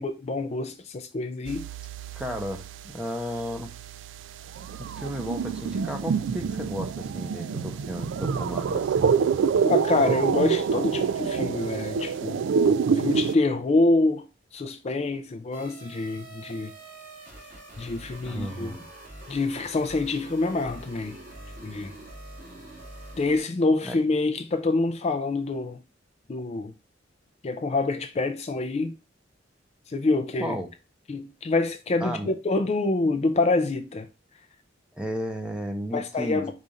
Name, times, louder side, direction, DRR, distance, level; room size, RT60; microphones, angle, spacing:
voice 1, 0.0-1.6 9.6-12.4 13.0-14.2 14.5-16.7 17.8-18.7 19.3-21.2 21.6-21.9 23.2-25.8 26.3-26.7 27.4-28.9 29.9-30.6 31.1-34.1 35.9-36.5, left 3 dB, 35° left, 0.4 m, -26 dB
sound 1, 1.5-3.0 3.3-13.4, right 6 dB, 80° right, 0.3 m, -27 dB
voice 2, 2.2-3.7 4.8-9.1 18.2-18.8 23.8-24.0 30.4-30.7 32.0-32.3 34.9-36.5, equal, 5° right, 0.7 m, -34 dB
sound 2, 15.5-23.4, right 1 dB, 50° right, 2.1 m, -45 dB
5.0 x 2.5 x 4.0 m
head